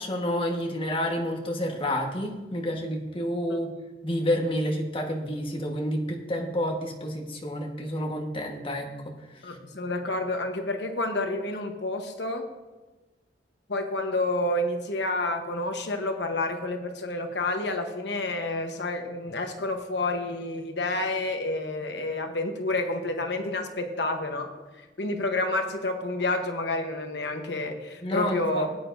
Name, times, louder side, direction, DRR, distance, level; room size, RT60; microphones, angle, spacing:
voice 1, 0.0-3.8 4.0-9.6 28.0-28.7, equal, 30° left, 1 dB, 1.4 m, -29 dB
voice 2, 9.4-12.4 13.7-24.5 24.8-28.7, left 2 dB, 65° left, 5 dB, 1.0 m, -29 dB
17.5 x 9.1 x 2.6 m, 1.2 s
head